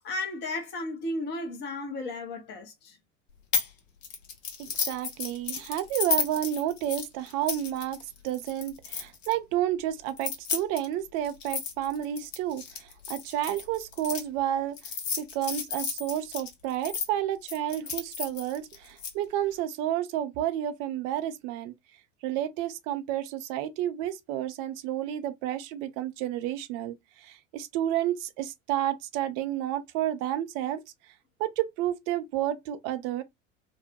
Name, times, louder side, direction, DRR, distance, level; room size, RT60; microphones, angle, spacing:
voice 1, 0.0-3.0, left 2 dB, 25° left, 0.6 m, -34 dB
sound 1, 3.5-3.7 4.0-9.3 10.1-14.2 14.8-17.1 17.5-19.1, left 6 dB, 65° left, 0.8 m, -33 dB
voice 2, 4.6-8.0 8.2-14.8 15.2-21.7 22.2-30.8 31.4-33.2, right 12 dB, 40° right, 0.4 m, -31 dB
2.2 x 2.0 x 2.7 m
figure-of-eight pair, 80°, 40 cm